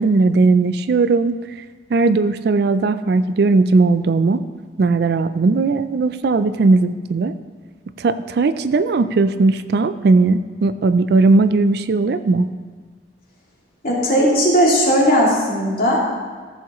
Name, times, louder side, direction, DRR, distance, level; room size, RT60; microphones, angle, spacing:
voice 1, 0.0-1.4 1.9-4.4 4.8-7.3 8.0-12.5, right 3 dB, 60° right, 12 dB, 0.3 m, -17 dB
voice 2, 13.8-16.0, equal, 50° left, -5 dB, 2.5 m, -16 dB
14.0 x 7.3 x 3.0 m, 1.5 s
head